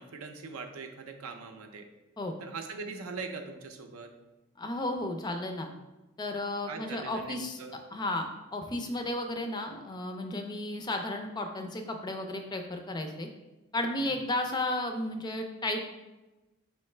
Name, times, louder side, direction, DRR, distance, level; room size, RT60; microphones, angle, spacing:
voice 1, 0.0-1.9 2.4-4.1 6.7-7.7 14.0-14.2, right 4 dB, 80° right, 5 dB, 0.5 m, -41 dB
voice 2, 4.6-5.7 6.2-7.6 7.9-13.3 13.7-15.9, left 1 dB, 20° left, 5 dB, 0.3 m, -33 dB
4.8 x 3.1 x 3.2 m, 1.1 s
head